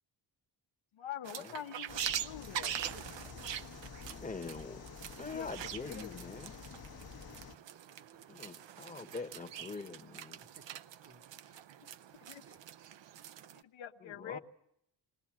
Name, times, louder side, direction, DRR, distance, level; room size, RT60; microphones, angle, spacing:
voice 1, 0.9-2.8 5.3-6.2 12.2-12.4 13.5-14.4, left 10 dB, 80° left, 1.1 m, -45 dB
sound 1, 1.2-13.6, right 10 dB, 70° right, 0.8 m, -44 dB
sound 2, 1.9-7.6, left 6 dB, 50° left, 1.2 m, -49 dB
voice 2, 4.0-4.8 5.2-6.6 8.3-10.4 14.0-14.4, left 4 dB, 15° left, 1.2 m, -44 dB
voice 3, 8.1-8.6 9.2-9.7 10.5-11.6 12.5-12.6, right 4 dB, 30° right, 1.1 m, -62 dB
20.0 x 19.5 x 7.4 m
cardioid pair, 105°, 46 cm